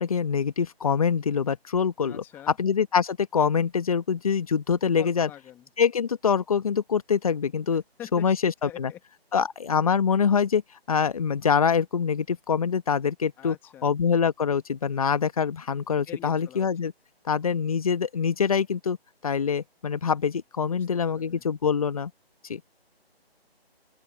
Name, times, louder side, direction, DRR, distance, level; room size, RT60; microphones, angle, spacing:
voice 1, 0.0-2.2 2.6-5.3 5.8-7.8 8.1-8.9 9.3-10.6 10.9-13.6 13.8-16.9 17.2-19.0 19.2-22.1 22.5-22.6, left 6 dB, 35° left, 1.2 m, -24 dB
voice 2, 2.0-2.6 5.0-5.7 7.7-9.0 13.4-13.9 16.1-16.7 20.7-21.4, left 12 dB, 5° left, 1.7 m, -45 dB
open air
figure-of-eight pair, 160°, 31 cm